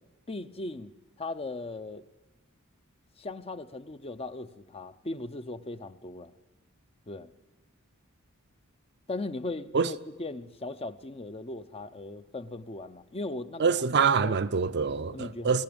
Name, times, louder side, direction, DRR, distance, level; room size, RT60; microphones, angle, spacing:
voice 1, 0.3-0.9 1.2-2.0 3.2-6.3 7.1-7.3 9.1-13.7 14.2-14.4 15.1-15.6, left 2 dB, 25° left, 0.7 m, -38 dB
voice 2, 13.6-15.6, right 5 dB, 50° right, 0.6 m, -25 dB
22.0 x 17.5 x 8.7 m
head